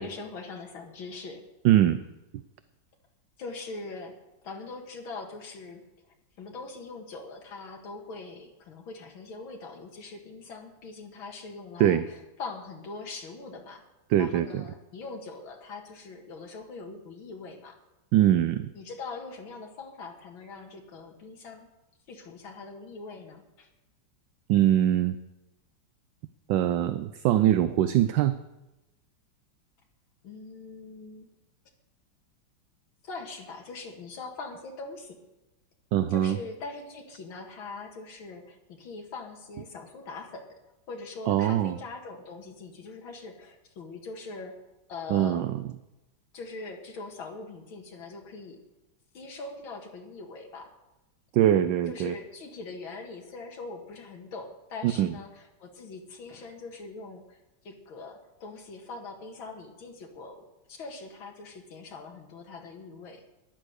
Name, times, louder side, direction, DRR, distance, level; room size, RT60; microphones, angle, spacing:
voice 1, 0.0-1.4 3.4-4.2 4.4-5.8 6.4-13.8 14.2-17.8 18.7-21.7 22.1-23.7 30.2-31.3 33.0-35.2 36.1-40.6 40.9-44.6 44.9-45.4 46.3-48.6 49.1-50.7 51.9-57.4 57.6-63.2, left 3 dB, 80° left, 2 dB, 2.6 m, -42 dB
voice 2, 1.6-2.0 11.8-12.0 14.1-14.6 18.1-18.7 24.5-25.2 26.5-28.4 35.9-36.4 41.3-41.8 45.1-45.6 51.3-52.1 54.8-55.1, right 12 dB, 75° right, 12 dB, 1.2 m, -23 dB
13.5 x 10.5 x 6.5 m, 1.0 s
omnidirectional pair, 2.2 m